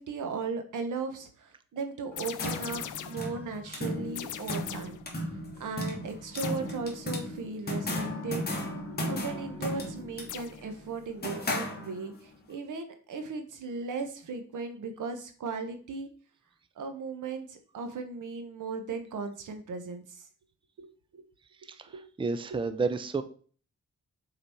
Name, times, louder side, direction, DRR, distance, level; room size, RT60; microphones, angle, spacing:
voice 1, 0.0-5.0 5.6-8.4 9.1-16.1 16.8-20.2 20.8-20.9 21.1-21.2 21.9-22.0 22.5-22.6, right 4 dB, 90° right, 6 dB, 1.2 m, -37 dB
sound 1, 2.1-12.3, left 1 dB, 30° left, 1.7 m, -36 dB
sound 2, 2.2-3.3 4.1-5.0 6.4-6.7 10.3-10.6, left 11 dB, 80° left, 0.5 m, -40 dB
voice 2, 21.7-23.2, right 4 dB, 15° right, 10 dB, 0.5 m, -31 dB
6.6 x 4.1 x 4.5 m, 0.42 s
wide cardioid pair, 130°, 30 cm